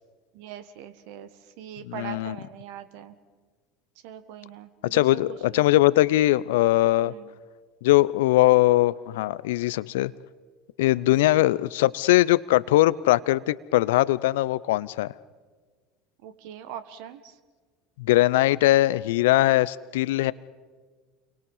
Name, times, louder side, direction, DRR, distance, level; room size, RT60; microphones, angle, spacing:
voice 1, 0.3-1.3 1.6-3.1 4.0-5.6 7.0-7.3 11.2-11.5 16.2-17.3, right 10 dB, 65° right, 11 dB, 1.6 m, -41 dB
voice 2, 1.8-2.4 4.9-7.1 7.8-10.1 10.8-15.1 18.0-20.3, left 16 dB, 75° left, 19 dB, 0.6 m, -21 dB
29.5 x 23.5 x 5.6 m, 1.5 s
hypercardioid pair, 70°, 0 cm